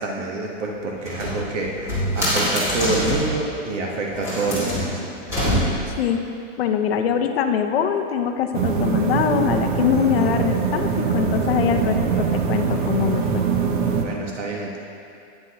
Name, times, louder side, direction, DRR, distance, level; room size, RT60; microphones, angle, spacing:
voice 1, 0.0-5.0 14.0-14.8, right 3 dB, 70° right, -1 dB, 1.3 m, -27 dB
sound 1, 1.0-3.4 4.1-6.0, equal, 5° right, 2.1 m, -24 dB
voice 2, 6.6-13.4, left 8 dB, 55° left, 6 dB, 0.6 m, -23 dB
sound 2, 8.5-14.0, right 6 dB, 40° right, 0.6 m, -22 dB
9.6 x 9.5 x 2.9 m, 2.6 s
supercardioid pair, 175°, 38 cm